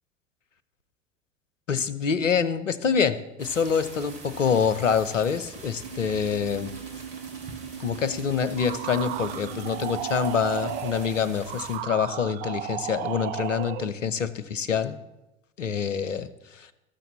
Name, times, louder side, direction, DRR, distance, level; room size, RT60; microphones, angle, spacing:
voice 1, 1.7-6.7 7.8-15.0 15.6-16.3 16.5-16.7, left 7 dB, 80° left, 15 dB, 0.8 m, -26 dB
sound 1, 3.4-11.8, right 3 dB, 60° right, 3.1 m, -45 dB
sound 2, 5.8-10.8, right 8 dB, 80° right, 2.6 m, -40 dB
sound 3, 8.6-14.0, right 12 dB, 25° right, 0.4 m, -34 dB
13.0 x 6.9 x 7.4 m, 0.99 s
figure-of-eight pair, 80°, 37 cm